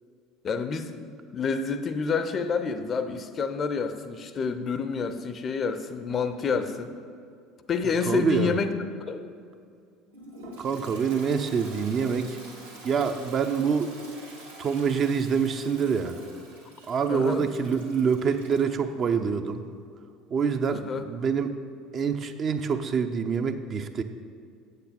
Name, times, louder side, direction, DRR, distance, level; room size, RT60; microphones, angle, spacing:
voice 1, 0.4-7.0 7.7-8.7 9.1-9.3 17.1-17.5 20.7-21.1, left 5 dB, 35° left, 10 dB, 0.5 m, -28 dB
voice 2, 8.1-8.5 10.6-12.4 12.8-13.9 14.6-16.2 16.9-19.6 20.3-21.5 21.9-24.0, right 6 dB, 35° right, 7 dB, 0.5 m, -26 dB
Toilet flush, 10.1-18.7, right 2 dB, 85° right, 1.7 m, -46 dB
8.2 x 8.0 x 4.1 m, 2.3 s
figure-of-eight pair, 65°, 0 cm